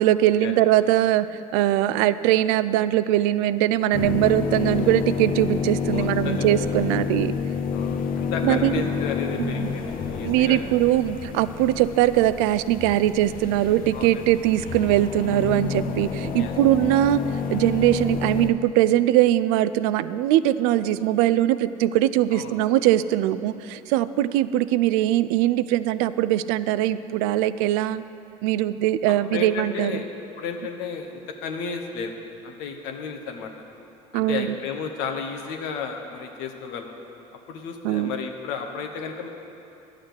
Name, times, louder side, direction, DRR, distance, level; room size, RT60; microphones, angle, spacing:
voice 1, 0.0-7.3 8.4-8.8 9.4-9.7 10.2-28.0 28.4-29.9 34.1-34.5 37.8-38.1, right 13 dB, 80° right, 15 dB, 0.4 m, -21 dB
sound 1, 3.9-18.5, left 6 dB, 50° left, 0.9 m, -29 dB
voice 2, 5.9-6.5 6.8-7.0 7.7-10.6 13.9-14.3 16.3-16.5 22.3-22.6 29.3-30.1 30.4-32.1 32.4-33.5 34.1-37.0 37.5-39.3, left 6 dB, 75° left, 4 dB, 1.1 m, -33 dB
10.5 x 6.5 x 7.9 m, 2.8 s
hypercardioid pair, 70°, 18 cm